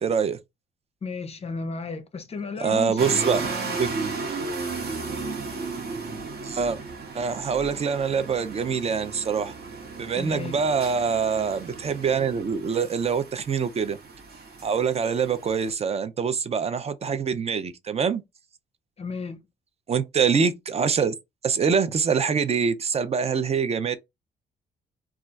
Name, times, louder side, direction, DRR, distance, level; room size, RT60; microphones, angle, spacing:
voice 1, 0.0-0.4 2.6-3.4 3.8-3.9 6.4-6.8 7.1-9.5 10.0-14.0 14.6-18.2 19.9-21.1 21.4-24.0, right 6 dB, 30° right, 0.4 m, -24 dB
voice 2, 1.0-3.8 10.1-10.7 19.0-19.4, left 4 dB, 30° left, 0.6 m, -34 dB
sound 1, 3.0-15.7, right 4 dB, 50° right, 1.2 m, -35 dB
2.4 x 2.2 x 3.8 m
cardioid pair, 90°, 20 cm